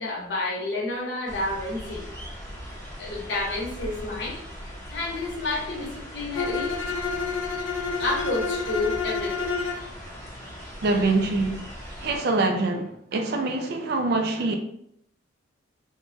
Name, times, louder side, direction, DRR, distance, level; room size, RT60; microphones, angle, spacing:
voice 1, 0.0-2.1 3.0-4.4 4.9-6.8 8.0-9.5, left 2 dB, 65° left, 0.9 m, -30 dB
sound 1, 1.3-12.2, equal, 10° left, 0.8 m, -40 dB
Bowed string instrument, 6.3-9.9, left 4 dB, 90° left, 0.3 m, -29 dB
voice 2, 10.8-11.7 12.0-14.6, right 2 dB, 55° right, 0.3 m, -24 dB
3.1 x 2.1 x 2.6 m
head